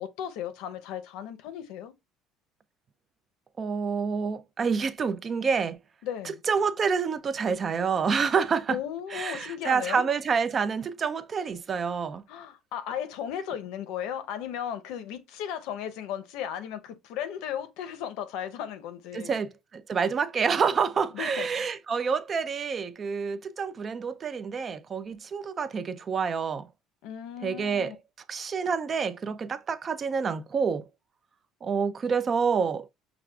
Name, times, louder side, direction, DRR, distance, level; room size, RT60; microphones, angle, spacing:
voice 1, 0.0-1.9 6.0-6.4 8.7-10.1 12.3-19.4 21.1-21.5 27.0-28.0, left 9 dB, 75° left, 0.7 m, -35 dB
voice 2, 3.6-5.8 6.2-8.8 9.1-12.2 19.1-26.7 27.4-27.9 28.3-30.9 31.6-32.9, right 5 dB, 30° right, 0.3 m, -28 dB
5.9 x 2.4 x 2.3 m
cardioid pair, 140°, 0 cm